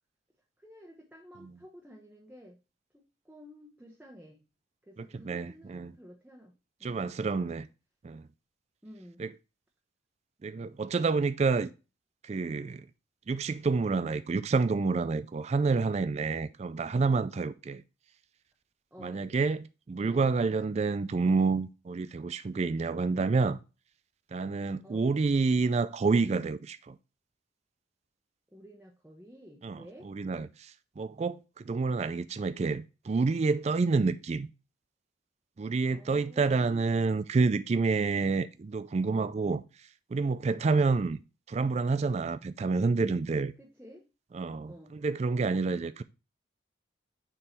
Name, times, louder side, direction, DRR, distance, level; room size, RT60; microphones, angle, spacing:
voice 1, 0.6-2.6 2.9-4.4 4.8-7.6 8.8-9.2 18.9-19.2 24.8-25.1 28.5-30.1 35.9-37.0 43.6-44.0 44.6-44.9, equal, 10° right, 1.0 m, -52 dB
voice 2, 5.0-5.9 6.8-7.7 8.0-8.3 9.2-9.3 10.4-11.7 12.2-12.9 13.3-17.8 19.0-23.6 24.3-27.0 29.6-34.5 35.6-39.6 40.1-41.2 41.5-43.5 44.3-46.0, right 4 dB, 35° right, 0.3 m, -28 dB
6.6 x 3.8 x 4.3 m
head